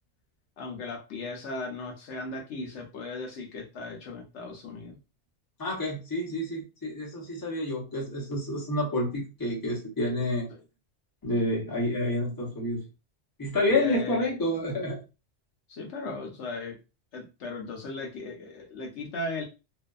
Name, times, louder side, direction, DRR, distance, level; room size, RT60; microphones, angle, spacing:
voice 1, 0.6-5.0 10.5-10.6 13.7-14.3 15.7-16.8 17.1-19.4, left 2 dB, 70° left, 2 dB, 0.9 m, -37 dB
voice 2, 5.6-10.5 11.2-12.8 13.4-15.0, left 1 dB, 20° left, -2 dB, 0.7 m, -29 dB
2.6 x 2.3 x 2.3 m, 0.29 s
omnidirectional pair, 1.3 m